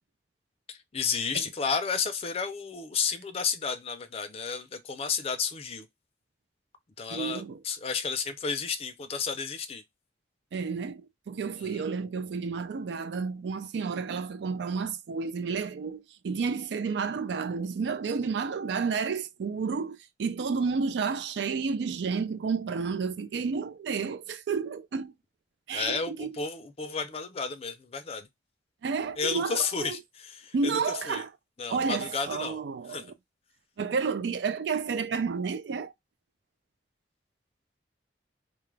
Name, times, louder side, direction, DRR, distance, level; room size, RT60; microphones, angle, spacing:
voice 1, 0.7-5.9 7.0-9.8 11.6-11.8 25.7-28.3 29.2-30.8 31.1-31.2 31.6-32.6 32.9-33.0, left 5 dB, 35° left, 0.4 m, -32 dB
voice 2, 7.1-7.6 10.5-25.1 25.7-26.3 28.8-30.0 30.5-31.3 31.7-33.1 33.8-35.9, right 5 dB, 75° right, 0.4 m, -31 dB
2.3 x 2.0 x 3.1 m
head